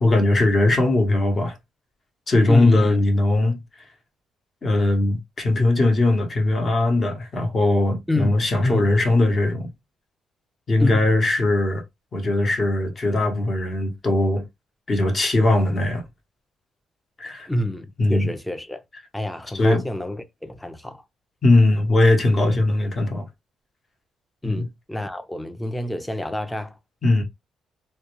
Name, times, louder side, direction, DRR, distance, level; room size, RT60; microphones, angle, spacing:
voice 1, 0.0-1.6 2.3-3.6 4.6-9.7 10.7-11.8 12.1-14.4 14.9-16.0 17.2-17.5 18.0-18.3 19.5-19.8 21.4-23.3 24.4-24.7 27.0-27.2, left 2 dB, 35° left, 0.9 m, -19 dB
voice 2, 2.5-3.0 8.1-8.4 8.6-8.9 10.8-11.1 17.5-18.8 19.1-21.0 24.4-26.8, left 1 dB, 10° left, 0.5 m, -27 dB
2.2 x 2.2 x 2.9 m
cardioid pair, 90°, 0 cm